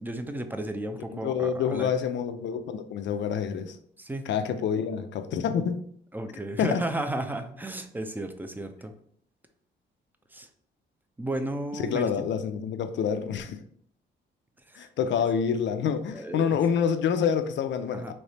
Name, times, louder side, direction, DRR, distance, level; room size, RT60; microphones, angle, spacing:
voice 1, 0.0-1.9 4.0-4.3 6.1-8.9 10.3-10.5 11.2-12.3 14.7-14.9 16.1-16.6 17.9-18.1, right 1 dB, 10° right, 0.5 m, -33 dB
voice 2, 1.1-3.8 4.3-5.8 6.6-6.8 11.7-13.6 14.7-18.1, left 7 dB, 65° left, 0.5 m, -27 dB
3.3 x 2.9 x 4.1 m
cardioid pair, 90°, 20 cm